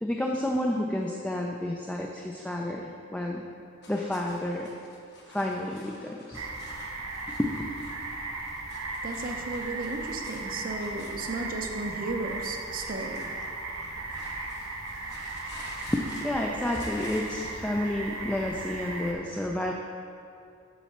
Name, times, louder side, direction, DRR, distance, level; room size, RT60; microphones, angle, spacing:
voice 1, 0.0-3.4 3.9-4.7 5.3-6.4 7.4-7.5 15.9-19.7, left 1 dB, 5° left, 0 dB, 0.3 m, -30 dB
sound 1, 3.8-17.7, left 2 dB, 55° left, 1.1 m, -50 dB
sound 2, 6.3-19.1, right 2 dB, 85° right, 0.8 m, -37 dB
voice 2, 9.0-13.3, right 2 dB, 45° right, 4 dB, 0.6 m, -34 dB
7.1 x 4.1 x 5.8 m, 2.5 s
head